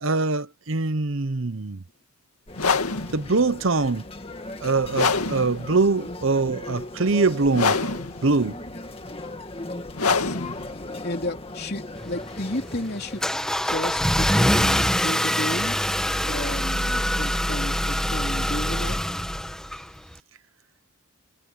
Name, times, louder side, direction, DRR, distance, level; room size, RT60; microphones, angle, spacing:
voice 1, 0.0-1.8 3.1-4.0 4.6-8.6, right 3 dB, 60° right, 0.9 m, -23 dB
sound 1, 2.5-12.4, left 4 dB, 85° left, 2.2 m, -28 dB
sound 2, 2.5-13.2, left 2 dB, 25° left, 2.1 m, -38 dB
voice 2, 5.7-6.2 10.1-10.6 11.0-13.3 13.6-15.8 16.2-19.0, left 1 dB, 45° left, 3.8 m, -33 dB
Car / Engine starting, 12.0-20.1, equal, 5° left, 1.4 m, -24 dB
head